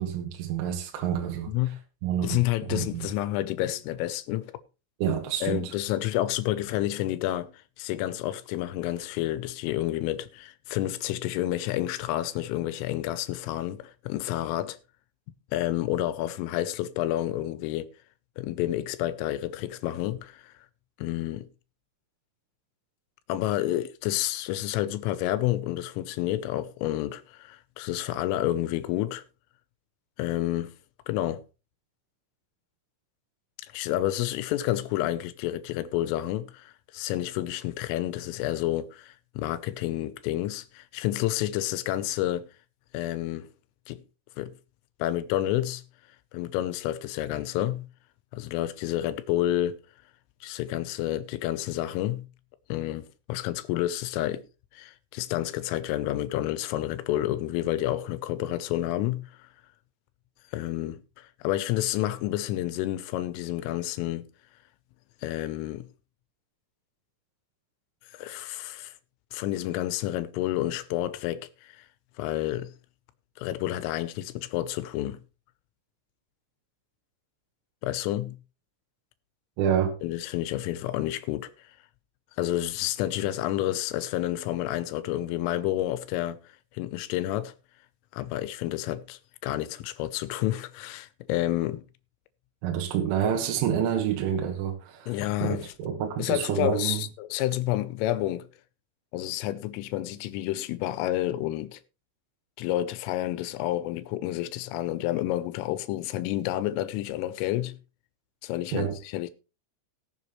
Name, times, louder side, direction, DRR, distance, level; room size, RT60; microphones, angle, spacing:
voice 1, 0.0-1.5 2.0-2.4 2.7-3.1 5.0-5.7 79.6-79.9 92.6-95.1 95.4-97.0 108.7-109.0, right 9 dB, 80° right, 3.6 m, -28 dB
voice 2, 1.5-1.8 2.2-4.6 5.4-14.8 15.5-17.9 18.4-20.5 21.0-21.5 23.3-29.2 30.2-30.7 31.1-31.4 33.6-42.5 42.9-43.5 43.9-44.0 44.4-44.5 45.0-45.8 46.3-47.9 48.3-49.8 50.4-52.3 52.7-54.5 54.7-59.5 60.5-64.3 65.2-65.9 68.1-68.9 69.3-71.9 72.2-72.7 73.4-75.2 77.8-78.4 80.0-81.5 82.4-86.4 86.8-87.5 88.1-91.9 95.1-95.7 96.2-98.5 99.1-101.8 102.6-107.8 108.4-109.3, left 14 dB, 90° left, 3.4 m, -29 dB
19.5 x 7.3 x 3.1 m
omnidirectional pair, 5.7 m